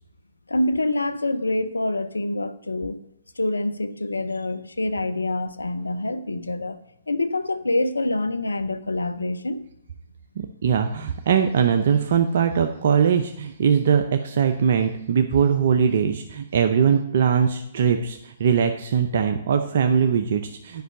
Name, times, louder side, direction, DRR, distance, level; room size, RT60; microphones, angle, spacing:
voice 1, 0.5-3.0 3.4-6.8 7.1-9.6, left 2 dB, 90° left, 0.6 m, -26 dB
voice 2, 10.4-20.8, right 7 dB, 60° right, 0.6 m, -21 dB
9.3 x 5.5 x 6.5 m
figure-of-eight pair, 125°, 0 cm